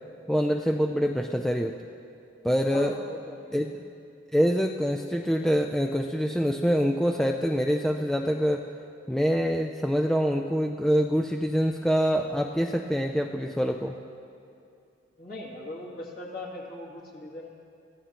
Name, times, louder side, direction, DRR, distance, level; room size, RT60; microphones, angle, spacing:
voice 1, 0.3-1.7 2.4-2.9 3.5-3.8 4.3-8.7 9.1-14.0, equal, ahead, 3 dB, 0.3 m, -25 dB
voice 2, 2.7-3.6 15.2-17.5, left 1 dB, 45° left, -4 dB, 2.4 m, -40 dB
23.0 x 14.5 x 2.9 m, 2.6 s
head